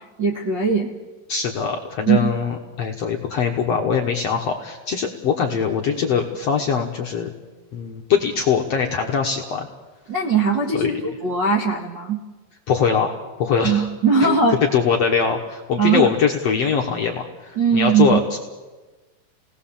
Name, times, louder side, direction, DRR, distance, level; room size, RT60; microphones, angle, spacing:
voice 1, 0.2-0.9 2.1-2.3 10.1-10.9 11.2-12.2 13.6-14.6 15.8-16.1 17.5-18.2, right 5 dB, 55° right, -4 dB, 1.3 m, -19 dB
voice 2, 1.3-7.3 7.7-9.7 10.7-11.1 12.7-13.9 14.2-14.4 14.7-18.4, left 6 dB, 70° left, 1 dB, 1.5 m, -22 dB
27.5 x 18.5 x 7.3 m, 1.3 s
omnidirectional pair, 4.8 m